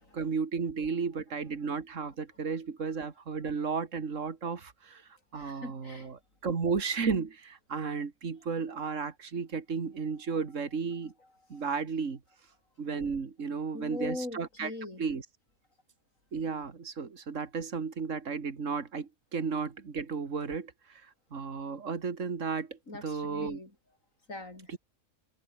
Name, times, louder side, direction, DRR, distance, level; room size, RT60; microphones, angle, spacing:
voice 1, 0.1-11.1 11.5-12.2 12.8-14.7 15.0-15.2 16.3-23.6 24.7-24.8, right 5 dB, 70° right, 2.4 m, -34 dB
voice 2, 5.3-6.1 11.2-11.7 13.7-15.0 22.9-23.7 24.3-24.7, left 2 dB, 80° left, 6.5 m, -41 dB
omnidirectional pair, 1.4 m